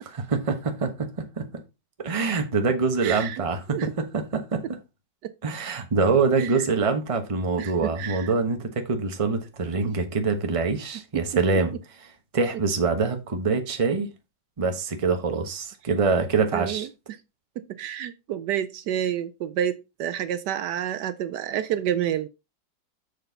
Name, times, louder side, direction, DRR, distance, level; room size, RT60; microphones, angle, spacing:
voice 1, 0.3-1.5 2.0-4.8 5.4-11.7 12.0-12.1 12.3-14.1 14.6-16.9, right 4 dB, 25° right, 0.9 m, -25 dB
voice 2, 3.0-3.4 3.7-3.9 5.2-5.3 6.4-6.6 7.6-8.3 9.8-9.9 11.1-11.2 16.5-16.9 17.6-22.3, right 10 dB, 75° right, 1.2 m, -29 dB
6.8 x 6.5 x 3.9 m
omnidirectional pair, 1.9 m